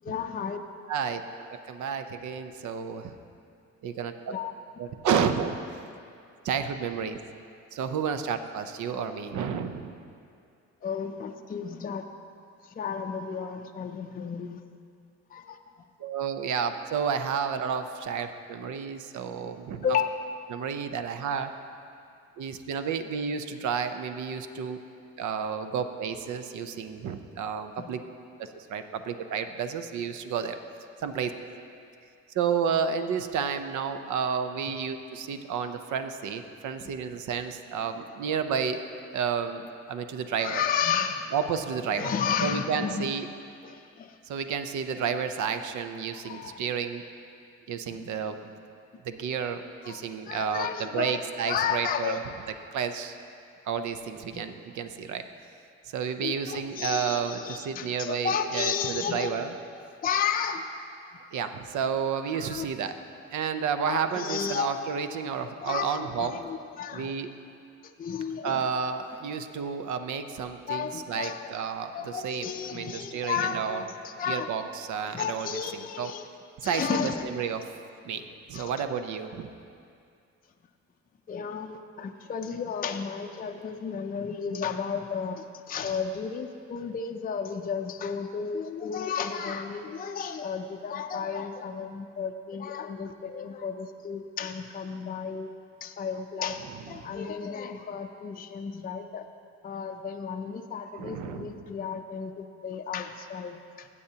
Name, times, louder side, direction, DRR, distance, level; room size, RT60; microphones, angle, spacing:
voice 1, 0.0-0.6 4.3-4.5 10.8-12.0 12.6-14.6 15.3-15.6 19.8-20.1 27.8-28.0 36.8-36.9 40.4-41.3 41.9-43.1 43.6-44.2 46.1-46.6 47.9-48.0 49.8-52.2 54.3-54.4 56.2-59.4 60.0-60.7 62.3-62.7 63.8-64.7 65.6-67.1 68.0-68.7 70.7-71.5 71.9-74.5 75.0-76.3 76.6-77.3 78.5-78.7 81.3-95.5 95.8-99.3 99.6-103.9, left 7 dB, 30° left, 5 dB, 0.5 m, -33 dB
voice 2, 0.9-1.2 1.7-3.1 3.8-4.4 4.8-5.6 6.4-7.2 7.7-9.9 16.0-20.0 20.5-21.5 22.4-24.8 25.2-28.0 28.4-30.6 31.0-31.3 32.3-38.8 39.1-40.6 41.3-42.1 42.4-43.3 44.2-47.0 47.7-48.5 49.0-52.2 52.7-53.2 53.7-55.3 55.9-59.5 61.3-62.9 63.3-66.4 66.9-67.3 68.4-73.8 74.3-76.1 76.6-77.7 78.0-79.5 101.0-101.5, right 6 dB, 75° right, 8 dB, 0.7 m, -31 dB
15.5 x 8.3 x 2.8 m, 2.4 s
cardioid pair, 90°, 30 cm